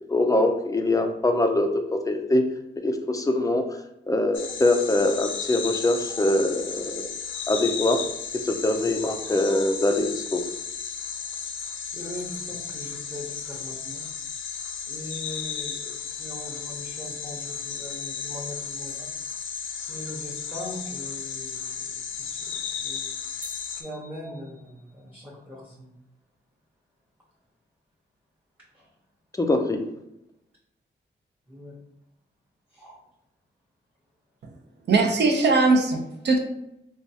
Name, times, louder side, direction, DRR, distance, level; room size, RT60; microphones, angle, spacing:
voice 1, 0.0-2.5 2.8-3.6 4.1-7.1 7.5-8.0 8.4-10.4 29.4-29.8, left 1 dB, 20° left, 5 dB, 0.3 m, -23 dB
sound 1, 4.3-23.8, left 7 dB, 85° left, 0.4 m, -34 dB
voice 2, 11.9-14.0 14.9-19.1 19.7-23.1 23.8-25.9 28.7-28.9 31.5-31.7 32.7-33.0, left 1 dB, 10° right, -7 dB, 0.7 m, -40 dB
sound 2, 23.4-25.0, equal, 35° right, 0.9 m, -46 dB
voice 3, 34.9-36.4, right 3 dB, 60° right, 4 dB, 0.6 m, -20 dB
4.4 x 2.3 x 2.7 m, 0.85 s
wide cardioid pair, 145°, 20 cm